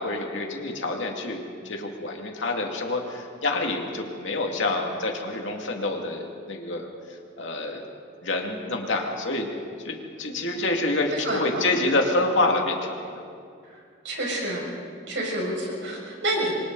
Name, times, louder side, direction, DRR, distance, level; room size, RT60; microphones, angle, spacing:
voice 1, 0.0-6.9 7.4-7.8 8.2-9.5 9.8-13.2, left 2 dB, 60° left, 1 dB, 2.5 m, -27 dB
voice 2, 11.1-11.8 13.6-14.7 15.1-16.5, right 1 dB, 60° right, -2 dB, 6.7 m, -29 dB
28.0 x 24.5 x 4.1 m, 2.3 s
head